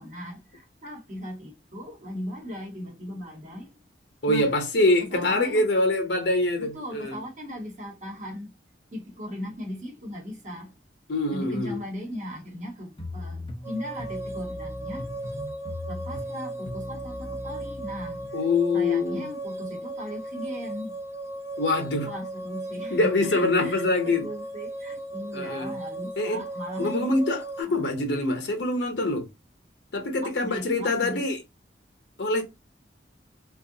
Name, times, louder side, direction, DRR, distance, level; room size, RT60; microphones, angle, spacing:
voice 1, 0.0-3.7 4.2-4.4 5.0-5.7 6.6-8.5 8.9-10.7 11.3-15.1 15.9-18.4 18.7-21.0 22.0-27.1 27.6-27.8 30.2-31.2, equal, 45° right, 1.1 m, -38 dB
voice 2, 4.2-7.2 11.1-11.8 18.3-19.2 21.6-22.1 22.9-24.3 25.3-25.7 26.2-26.4 26.8-29.3 29.9-31.4 32.2-32.4, left 2 dB, 70° left, 0.7 m, -24 dB
sound 1, 13.0-18.3, left 1 dB, 30° left, 0.6 m, -39 dB
sound 2, 13.6-27.6, right 2 dB, 15° right, 0.4 m, -37 dB
3.5 x 2.3 x 2.7 m
head